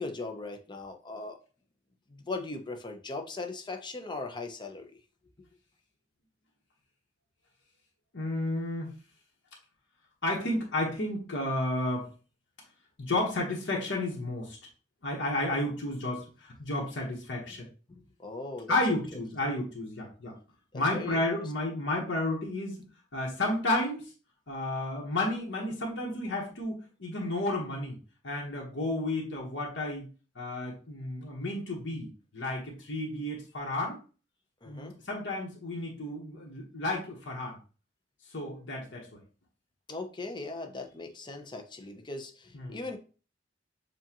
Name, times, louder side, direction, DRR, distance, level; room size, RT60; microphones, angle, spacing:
voice 1, 0.0-1.4 2.1-5.0 17.5-17.6 17.9-19.2 20.7-21.2 34.6-35.0 39.9-43.0, left 3 dB, 25° left, 5 dB, 0.7 m, -39 dB
voice 2, 8.1-8.9 10.2-12.1 13.0-14.6 15.0-17.7 18.7-20.4 20.7-22.8 23.1-24.1 24.5-28.0 28.2-30.0 30.3-34.0 34.6-37.6 38.3-39.2 42.5-42.8, left 1 dB, 80° left, -3 dB, 1.2 m, -32 dB
7.1 x 2.5 x 2.9 m, 0.36 s
head